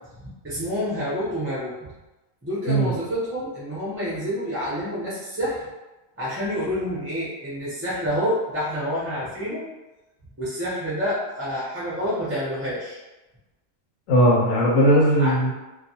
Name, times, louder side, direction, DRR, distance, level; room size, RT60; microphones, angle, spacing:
voice 1, 0.4-1.8 2.4-5.6 6.2-9.7 10.4-13.0 15.2-15.3, equal, 20° right, -8 dB, 0.4 m, -28 dB
voice 2, 14.1-15.5, equal, 90° left, -5 dB, 1.0 m, -18 dB
2.3 x 2.2 x 2.6 m, 1.1 s
omnidirectional pair, 1.3 m